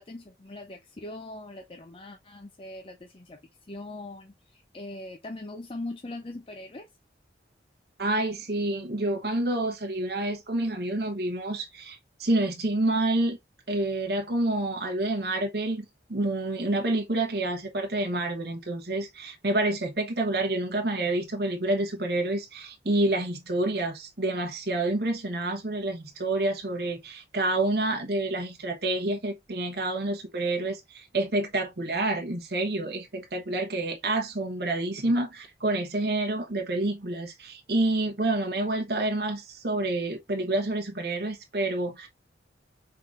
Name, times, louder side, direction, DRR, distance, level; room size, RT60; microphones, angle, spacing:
voice 1, 0.0-3.4 3.7-6.9, left 2 dB, 30° left, 0.5 m, -41 dB
voice 2, 8.0-13.4 13.7-42.1, right 2 dB, 60° right, 1.0 m, -28 dB
5.6 x 3.7 x 2.5 m
head